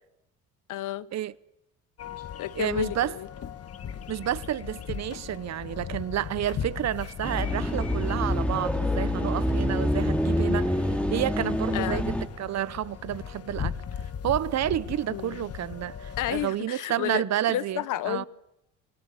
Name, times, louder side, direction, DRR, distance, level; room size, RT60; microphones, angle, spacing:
voice 1, 0.7-1.1 2.4-3.3 11.7-12.1 15.1-15.5 16.2-18.3, left 14 dB, 65° left, 1.1 m, -31 dB
sound 1, 2.0-16.5, left 8 dB, 45° left, 1.4 m, -38 dB
voice 2, 2.6-3.1 4.1-13.7 14.2-18.3, right 12 dB, 50° right, 0.9 m, -30 dB
sound 2, 7.2-12.3, left 1 dB, 5° left, 2.5 m, -26 dB
29.0 x 17.0 x 8.3 m
supercardioid pair, 85°, 34 cm